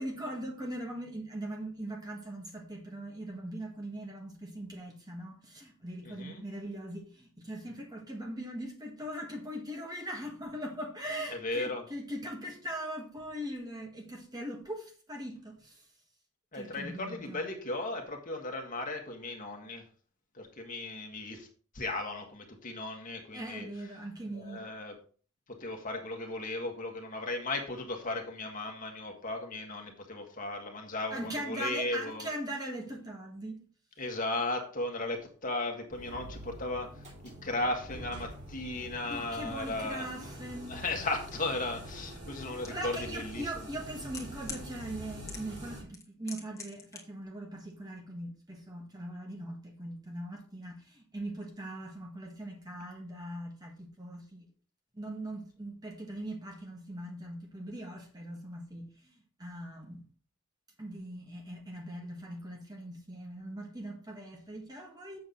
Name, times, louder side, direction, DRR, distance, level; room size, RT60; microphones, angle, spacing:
voice 1, 0.0-15.8 16.5-17.4 23.3-24.7 31.1-33.6 39.0-40.7 42.7-54.5 54.9-59.1 59.4-60.1 60.8-65.2, right 1 dB, 20° right, 1.6 m, -40 dB
voice 2, 6.0-6.4 11.3-11.8 16.5-19.8 20.3-21.5 21.7-23.7 24.3-25.0 25.5-32.3 34.0-36.9 37.2-40.1 40.7-43.7, left 2 dB, 40° left, 1.7 m, -36 dB
sound 1, 35.9-45.8, right 1 dB, 35° right, 3.0 m, -45 dB
sound 2, 42.6-42.7 43.7-44.6 45.3-45.7 45.9-47.0 47.3-47.4, left 4 dB, 15° left, 1.7 m, -42 dB
7.8 x 7.0 x 3.9 m
head